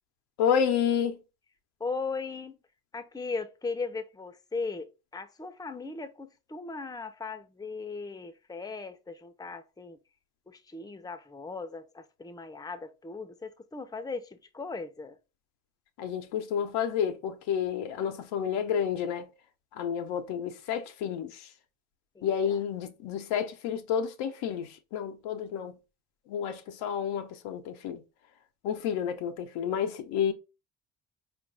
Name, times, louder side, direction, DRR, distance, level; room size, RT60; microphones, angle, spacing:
voice 1, 0.4-1.2 16.0-19.3 19.7-21.5 22.2-25.8 26.3-28.0 28.6-30.3, left 8 dB, 75° left, 0.8 m, -30 dB
voice 2, 1.8-2.6 2.9-10.0 10.5-15.2 22.1-22.6, left 4 dB, 10° left, 0.7 m, -38 dB
4.4 x 2.5 x 3.7 m
hypercardioid pair, 55°, 41 cm